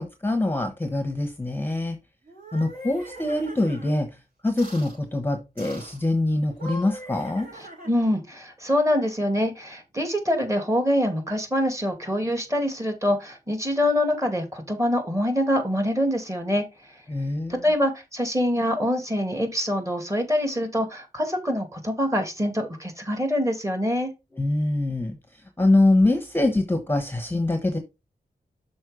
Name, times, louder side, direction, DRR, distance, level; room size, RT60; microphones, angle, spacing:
voice 1, 0.0-2.0 2.5-4.2 4.4-7.5 17.1-17.7 24.4-27.8, left 2 dB, 10° left, 1.1 m, -24 dB
sound 1, 2.2-3.9 4.6-5.0 5.6-6.0 6.5-8.2, right 1 dB, 55° right, 5.1 m, -41 dB
voice 2, 7.9-16.6 17.5-24.1, equal, 15° right, 2.2 m, -25 dB
6.3 x 4.4 x 4.9 m
wide cardioid pair, 80°, 17 cm